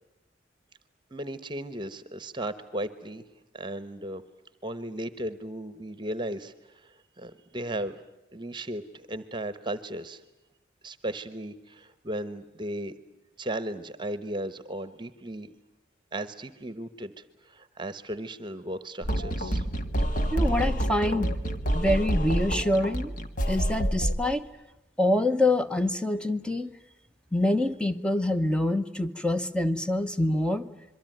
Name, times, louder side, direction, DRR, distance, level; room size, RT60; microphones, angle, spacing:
voice 1, 1.1-3.2 3.5-4.2 4.6-8.0 8.3-10.2 10.8-12.9 13.4-15.5 16.1-19.7, right 1 dB, 25° right, 13 dB, 1.1 m, -36 dB
sound 1, 19.0-24.3, right 1 dB, 45° left, 1.7 m, -28 dB
voice 2, 20.3-21.3 21.7-23.1 23.5-24.5 25.0-26.7 27.3-30.7, left 1 dB, 5° left, 9 dB, 1.0 m, -26 dB
26.5 x 23.5 x 9.2 m, 0.94 s
head